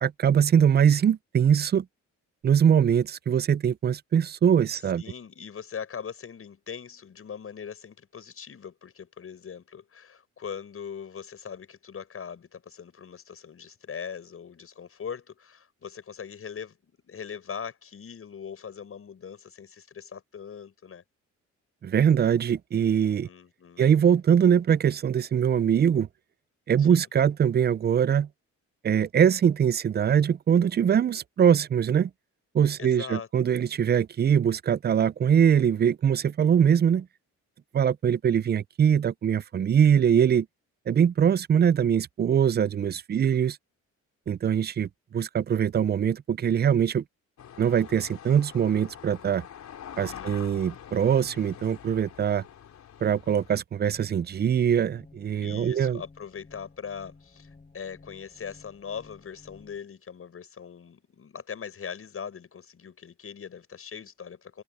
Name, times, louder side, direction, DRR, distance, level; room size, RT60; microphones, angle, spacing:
voice 1, 0.0-1.9 2.4-5.0 21.8-23.3 23.8-26.1 26.7-28.3 28.8-32.1 32.5-37.1 37.7-40.5 40.9-43.6 44.3-47.0 47.6-49.4 50.0-52.4 53.0-56.0, right 8 dB, 35° right, 0.5 m, -22 dB
voice 2, 5.0-21.0 23.3-23.9 26.8-27.1 32.8-33.3 43.2-43.4 50.1-50.7 55.4-64.6, left 7 dB, 50° left, 7.3 m, -41 dB
sound 1, 47.4-53.6, left 9 dB, 65° left, 4.0 m, -45 dB
sound 2, 53.8-59.8, left 3 dB, 25° left, 7.3 m, -54 dB
cardioid pair, 90°, 30 cm